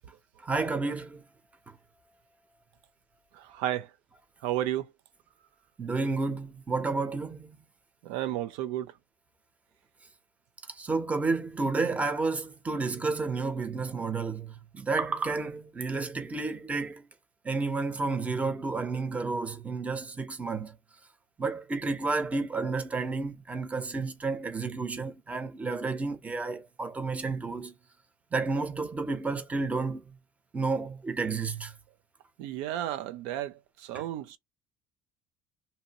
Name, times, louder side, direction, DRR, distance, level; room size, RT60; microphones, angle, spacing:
voice 1, 0.4-1.2 5.8-7.6 10.7-17.0 17.4-20.7 21.4-27.8 28.3-30.0 30.5-31.7 33.9-34.1, right 3 dB, 15° right, 0.8 m, -31 dB
voice 2, 3.3-3.9 4.4-4.9 8.0-8.9 32.4-34.4, right 13 dB, 80° right, 0.5 m, -32 dB
2.7 x 2.7 x 2.9 m
cardioid pair, 135°, 9 cm